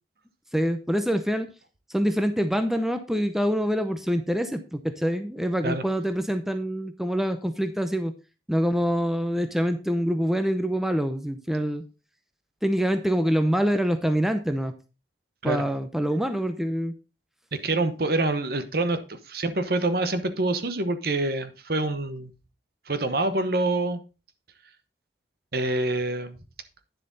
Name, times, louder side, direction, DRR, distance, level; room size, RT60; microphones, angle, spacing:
voice 1, 0.5-1.5 1.9-8.1 8.5-11.8 12.6-14.7 15.4-16.9, equal, ahead, 8 dB, 0.7 m, -25 dB
voice 2, 17.5-22.3 22.9-24.0 25.5-26.4, right 2 dB, 55° right, 11 dB, 1.0 m, -26 dB
9.8 x 7.4 x 3.9 m, 0.31 s
head